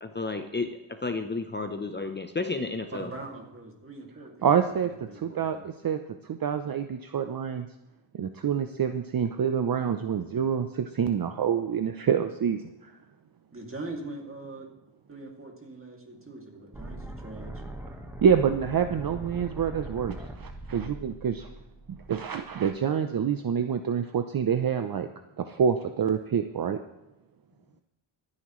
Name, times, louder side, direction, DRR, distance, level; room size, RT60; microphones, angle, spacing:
voice 1, 0.0-3.1, left 3 dB, 25° left, 6 dB, 0.7 m, -32 dB
voice 2, 2.9-5.6 13.5-14.7 15.1-17.6, right 2 dB, 25° right, 1 dB, 2.5 m, -42 dB
voice 3, 4.4-6.0 6.3-7.7 8.1-12.9 18.2-21.5 21.9-25.1 25.4-26.8, right 7 dB, 50° right, 8 dB, 0.7 m, -27 dB
sound 1, 16.7-22.7, right 1 dB, 5° right, 1.4 m, -41 dB
25.5 x 9.8 x 3.2 m, 0.97 s
wide cardioid pair, 135°, 46 cm